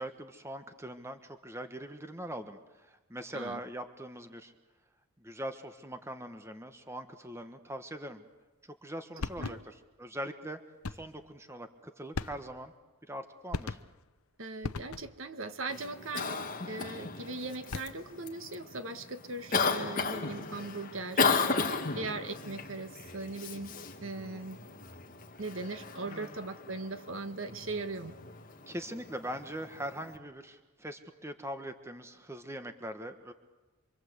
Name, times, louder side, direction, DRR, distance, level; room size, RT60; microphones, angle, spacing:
voice 1, 0.0-4.5 5.2-8.2 8.6-10.6 10.9-12.7 13.1-13.8 21.3-21.6 26.0-26.4 28.7-33.3, right 1 dB, 10° right, 8 dB, 1.4 m, -42 dB
sound 1, 9.2-9.9 10.8-11.2 12.1-12.8 13.5-14.1 14.6-15.3 17.5-18.2, left 3 dB, 85° left, 0.8 m, -39 dB
voice 2, 14.4-23.7 24.0-24.8 25.4-28.1, right 3 dB, 65° right, 8 dB, 1.8 m, -39 dB
Cough, 15.7-30.2, left 4 dB, 40° left, 2.1 m, -35 dB
27.5 x 24.5 x 8.1 m, 1.2 s
head